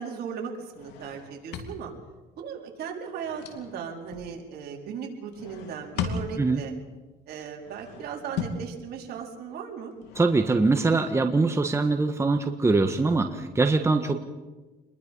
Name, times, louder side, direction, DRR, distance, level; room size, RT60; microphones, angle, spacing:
voice 1, 0.0-1.9 2.4-6.7 7.3-9.9, right 7 dB, 70° right, 0 dB, 4.6 m, -37 dB
sound 1, 0.7-2.2 2.9-4.3 5.3-6.7 7.5-8.7 9.9-10.9, left 6 dB, 90° left, 2.8 m, -37 dB
voice 2, 10.1-14.2, right 3 dB, 15° right, 5 dB, 1.5 m, -23 dB
27.5 x 21.5 x 5.6 m, 1.2 s
cardioid pair, 110°, 17 cm